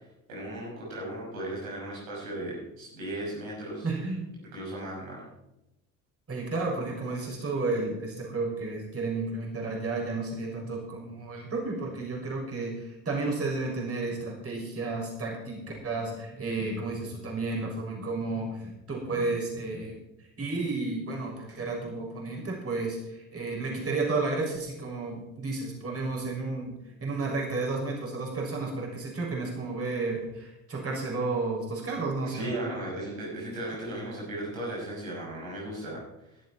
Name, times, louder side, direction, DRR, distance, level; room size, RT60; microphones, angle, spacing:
voice 1, 0.3-3.9 4.5-5.3 32.2-36.0, right 1 dB, 80° right, -5 dB, 6.2 m, -36 dB
voice 2, 3.8-4.2 6.3-32.7, right 3 dB, 35° right, -2 dB, 6.3 m, -32 dB
16.5 x 12.0 x 4.4 m, 0.90 s
hypercardioid pair, 65°, 41 cm